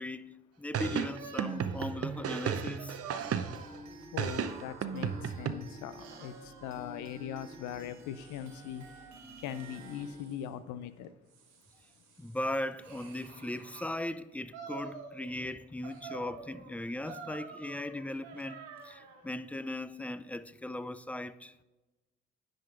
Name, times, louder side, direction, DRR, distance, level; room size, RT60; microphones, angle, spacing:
voice 1, 0.0-3.0 12.2-21.5, left 1 dB, 5° left, 0.5 m, -38 dB
sound 1, 0.7-3.8 4.2-5.5, right 8 dB, 50° right, 0.7 m, -34 dB
sound 2, 1.1-5.6 6.0-7.5 8.1-9.1 9.5-10.5 11.0-13.9 14.5-15.5 15.8-19.3, right 5 dB, 90° right, 1.2 m, -49 dB
sound 3, 3.2-10.2, right 1 dB, 70° right, 1.6 m, -50 dB
voice 2, 4.1-8.8 9.4-11.1, left 10 dB, 75° left, 0.6 m, -41 dB
10.0 x 5.2 x 3.8 m
hypercardioid pair, 45°, 30 cm